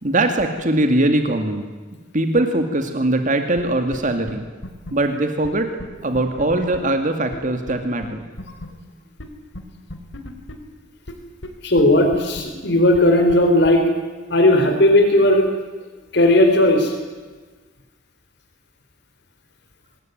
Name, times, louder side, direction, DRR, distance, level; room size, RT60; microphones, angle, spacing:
voice 1, 0.0-1.7 2.1-4.4 4.9-5.7 6.0-8.2, right 1 dB, 45° right, 6 dB, 2.3 m, -21 dB
sound 1, 3.6-3.7 3.9-4.0 4.3-4.4 4.6-4.9 5.4-5.5 5.8-5.9 6.1-6.8 7.3-7.4 7.7-7.8 8.0-8.1 8.4-8.7 9.2-9.3 9.5-9.6 9.9-10.5 11.1-11.2 11.4-11.5 11.8-11.9 12.1-12.4 12.9-13.0 13.3-13.4 13.6-13.7, left 1 dB, 85° left, 3.5 m, -34 dB
voice 2, 11.6-13.8 14.3-15.5 16.1-16.9, left 1 dB, 65° left, 5 dB, 4.0 m, -15 dB
26.0 x 20.5 x 9.3 m, 1.4 s
head